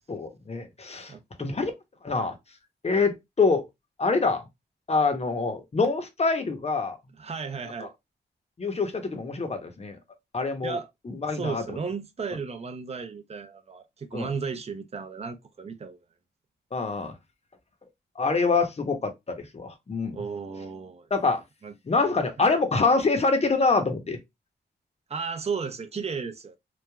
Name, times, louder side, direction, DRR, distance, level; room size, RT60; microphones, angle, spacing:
voice 1, 0.1-1.7 2.0-2.3 2.8-3.6 4.0-4.4 4.9-7.0 7.8-7.9 8.6-10.0 10.3-10.8 11.1-11.8 14.1-14.3 16.7-17.1 18.2-20.2 21.1-21.4 21.9-24.2, left 4 dB, 35° left, 0.8 m, -25 dB
voice 2, 1.1-1.5 7.2-7.9 10.6-10.9 11.3-16.0 20.0-21.1 21.6-21.7 22.4-22.5 25.1-26.6, right 5 dB, 35° right, 0.6 m, -34 dB
3.2 x 2.2 x 2.2 m
cardioid pair, 65°, 18 cm